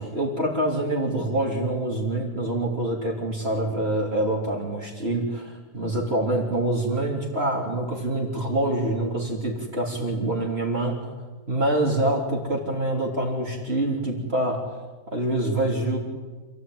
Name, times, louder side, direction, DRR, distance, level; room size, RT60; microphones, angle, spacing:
voice 1, 0.0-11.0 11.5-14.7 15.1-16.0, right 1 dB, 40° right, -2 dB, 3.8 m, -26 dB
28.0 x 16.0 x 9.5 m, 1.3 s
omnidirectional pair, 1.7 m